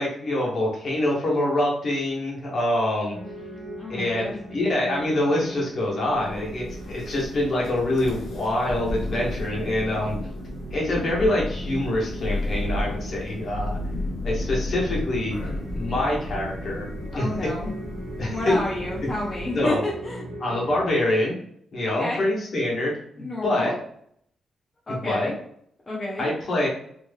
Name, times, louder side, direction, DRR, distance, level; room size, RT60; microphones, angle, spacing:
voice 1, 0.0-3.2 3.9-10.1 10.7-13.8 14.2-15.4 15.7-16.9 17.1-17.5 18.2-18.6 19.5-19.8 20.4-21.3 21.7-22.9 23.2-23.7 24.9-25.3 26.2-26.7, left 1 dB, 50° left, -4 dB, 1.3 m, -25 dB
sound 1, 3.1-20.8, right 1 dB, 85° right, 0.9 m, -40 dB
voice 2, 3.8-4.4 17.1-17.7 18.3-20.2 21.9-22.2 23.2-23.7 24.9-25.3 25.9-26.3, left 2 dB, 25° left, -5 dB, 0.6 m, -30 dB
Thunder, 6.1-19.7, left 1 dB, 65° left, 0.8 m, -33 dB
3.5 x 2.9 x 2.3 m, 0.68 s
wide cardioid pair, 140°, 0 cm